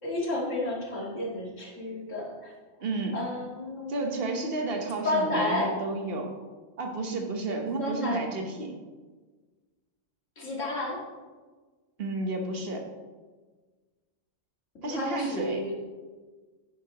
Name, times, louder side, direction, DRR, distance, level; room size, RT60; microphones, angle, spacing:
voice 1, 0.0-2.5 3.1-4.2 5.0-5.7 7.8-8.2 10.4-11.0 14.8-15.7, left 2 dB, 85° left, -3 dB, 2.5 m, -31 dB
voice 2, 2.8-3.2 3.9-6.3 6.8-8.7 12.0-12.9 14.8-15.7, right 2 dB, 55° right, 3 dB, 1.4 m, -31 dB
11.0 x 9.2 x 3.0 m, 1.4 s
omnidirectional pair, 1.3 m